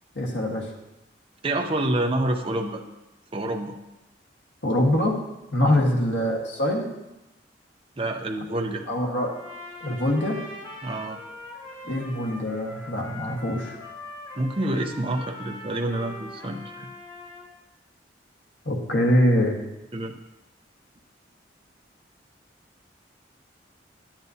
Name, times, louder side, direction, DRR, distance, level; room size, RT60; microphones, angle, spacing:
voice 1, 0.1-0.7 4.6-5.2 5.5-6.8 8.9-9.3 9.8-10.4 11.8-13.8 18.6-19.6, left 1 dB, 75° left, 0 dB, 1.5 m, -23 dB
voice 2, 1.4-2.8 3.3-3.7 5.6-5.8 8.0-8.8 10.8-11.2 14.4-16.9 19.9-20.1, right 1 dB, 30° right, 3 dB, 0.6 m, -27 dB
Trumpet, 9.1-17.5, left 2 dB, 20° left, 1.5 m, -41 dB
10.5 x 8.8 x 2.7 m, 0.97 s
head